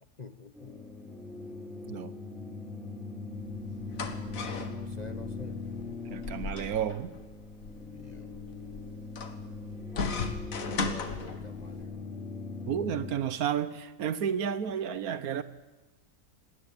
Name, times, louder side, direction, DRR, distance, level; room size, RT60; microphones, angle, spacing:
voice 1, 0.2-0.8 4.7-5.6 7.9-8.3 10.6-12.1, left 3 dB, 35° left, 9 dB, 0.8 m, -48 dB
sound 1, 0.5-13.1, left 3 dB, ahead, 4.3 m, -40 dB
sound 2, 3.4-11.8, left 4 dB, 60° left, 1.9 m, -38 dB
voice 2, 6.1-7.1 12.7-15.4, right 8 dB, 70° right, 14 dB, 1.4 m, -31 dB
19.5 x 18.0 x 9.0 m, 1.2 s
omnidirectional pair, 1.6 m